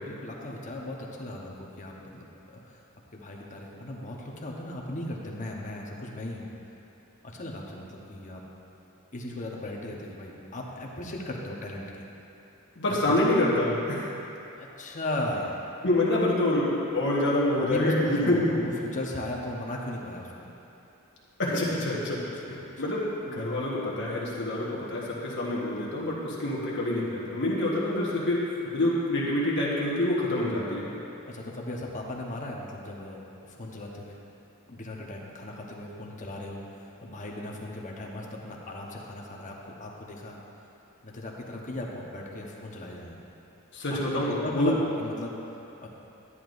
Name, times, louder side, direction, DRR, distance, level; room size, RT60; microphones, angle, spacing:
voice 1, 0.0-2.8 3.1-6.5 7.2-8.4 9.1-12.1 13.0-13.1 14.6-15.5 17.6-20.5 22.2-22.7 31.3-34.2 34.7-40.4 41.0-43.2 43.9-45.4 45.8-45.9, left 1 dB, 35° left, -2 dB, 1.0 m, -37 dB
voice 2, 12.8-14.1 15.8-18.6 21.4-28.5 28.7-30.9 43.7-44.7, left 1 dB, 55° left, -5 dB, 1.2 m, -27 dB
11.0 x 10.0 x 2.6 m, 2.9 s
head